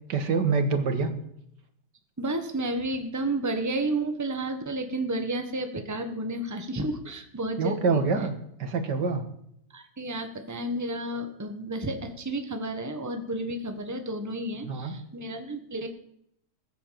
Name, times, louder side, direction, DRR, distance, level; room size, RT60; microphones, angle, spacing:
voice 1, 0.1-1.1 7.6-9.2 14.6-15.0, right 4 dB, 80° right, 8 dB, 2.2 m, -26 dB
voice 2, 2.2-8.0 9.7-15.9, right 1 dB, 10° right, 6 dB, 1.4 m, -31 dB
20.0 x 8.1 x 7.6 m, 0.74 s
omnidirectional pair, 1.9 m